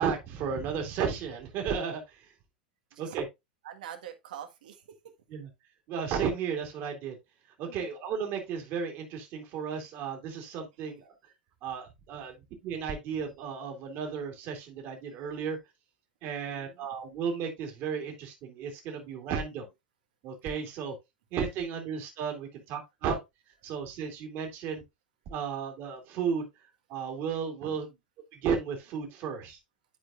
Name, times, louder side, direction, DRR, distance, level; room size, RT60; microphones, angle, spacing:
voice 1, 0.0-2.3 3.0-3.3 5.3-5.5 5.9-7.2 7.6-11.1 11.6-12.3 12.6-15.6 16.2-19.7 20.2-20.9 21.3-23.2 23.6-24.8 25.3-26.4 26.9-27.9 28.3-29.6, right 6 dB, 50° right, 2.5 m, -34 dB
voice 2, 3.6-4.8 7.7-7.9 16.2-16.8 27.6-27.7, right 10 dB, 70° right, 1.5 m, -45 dB
11.5 x 4.8 x 2.4 m
hypercardioid pair, 90°, 5 cm